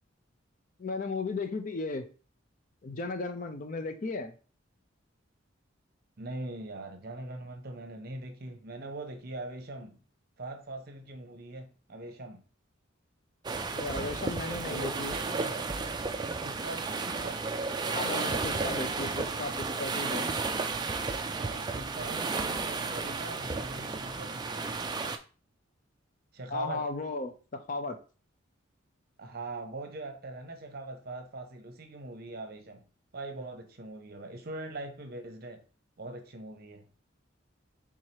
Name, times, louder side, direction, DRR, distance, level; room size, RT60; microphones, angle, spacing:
voice 1, 0.8-2.1 2.8-4.3 13.7-15.1 17.9-19.5 19.8-20.4 26.5-27.3 27.7-28.0, left 3 dB, 40° left, 0.5 m, -35 dB
voice 2, 6.2-10.0 10.4-12.4 14.7-15.6 16.4-17.4 21.2-24.7 26.3-26.9 29.2-32.9 33.1-35.6 36.0-36.8, right 2 dB, 50° right, 0.8 m, -42 dB
sound 1, 13.4-25.2, right 4 dB, 20° right, 0.3 m, -33 dB
4.7 x 3.7 x 2.8 m
head